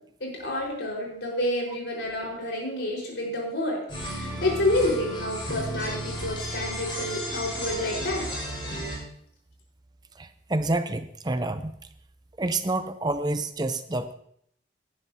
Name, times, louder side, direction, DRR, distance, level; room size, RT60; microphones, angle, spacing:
voice 1, 0.2-3.8 4.1-8.3, left 1 dB, 75° left, -2 dB, 4.6 m, -29 dB
sound 1, 3.9-9.0, equal, 25° left, 4.7 m, -33 dB
voice 2, 10.2-11.7 12.4-14.1, right 2 dB, 20° right, 10 dB, 0.5 m, -28 dB
17.5 x 11.0 x 2.8 m, 0.68 s
head